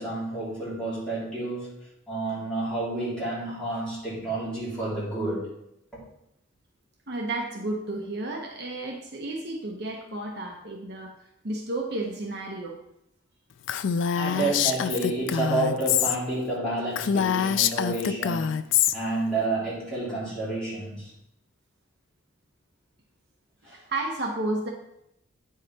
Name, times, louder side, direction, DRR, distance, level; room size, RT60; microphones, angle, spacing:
voice 1, 0.0-5.5 14.1-18.6 18.9-21.1 23.6-23.8, right 2 dB, 5° left, -10 dB, 3.4 m, -30 dB
voice 2, 7.1-11.1 11.4-12.8 23.7-24.7, right 2 dB, 55° right, 0 dB, 1.0 m, -32 dB
Female speech woman speaking, 13.7-16.2 16.5-16.6 16.9-18.9, left 8 dB, 70° left, 0.4 m, -25 dB
8.9 x 4.9 x 4.2 m, 0.80 s
head